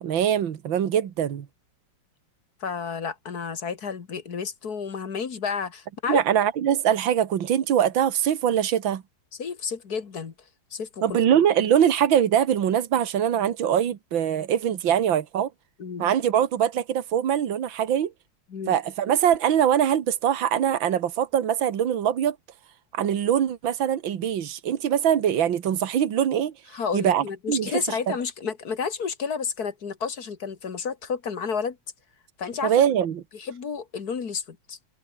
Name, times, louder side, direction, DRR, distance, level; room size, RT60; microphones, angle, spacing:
voice 1, 0.0-1.5 6.1-9.0 11.0-15.5 16.0-18.1 18.7-22.4 22.9-26.5 26.9-28.1 32.6-33.2, right 9 dB, 80° right, 2.2 m, -23 dB
voice 2, 2.6-6.2 9.4-10.3 10.7-11.0 15.8-16.1 18.5-18.7 26.7-31.8 32.4-32.9 33.3-34.8, left 6 dB, 50° left, 2.3 m, -31 dB
omnidirectional pair, 2.1 m